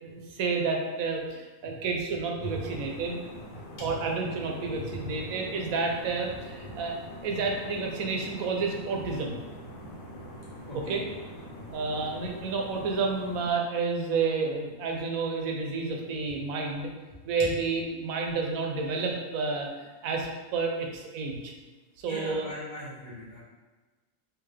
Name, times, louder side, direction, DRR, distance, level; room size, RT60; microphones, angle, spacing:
voice 1, 0.0-3.2 3.8-9.4 10.7-11.0 11.7-16.9 17.2-21.5 22.0-22.5, right 4 dB, 90° right, 1 dB, 1.1 m, -30 dB
sound 1, 2.4-13.5, equal, 85° left, 1.3 m, -44 dB
voice 2, 4.6-5.1 6.6-6.7 10.7-11.0 11.5-11.7 22.0-23.4, left 1 dB, 40° left, -8 dB, 1.1 m, -40 dB
3.6 x 2.8 x 3.3 m, 1.3 s
omnidirectional pair, 1.4 m